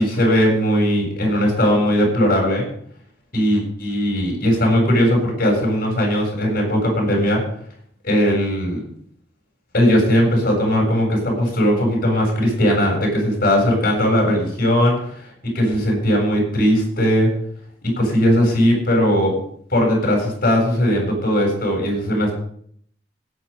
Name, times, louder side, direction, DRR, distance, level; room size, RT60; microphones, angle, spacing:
voice 1, 0.0-2.7 3.3-7.4 8.0-8.8 9.7-15.3 15.5-17.3 17.8-19.4 19.7-22.3, equal, 55° left, -1 dB, 7.5 m, -18 dB
17.0 x 9.7 x 5.4 m, 0.63 s
head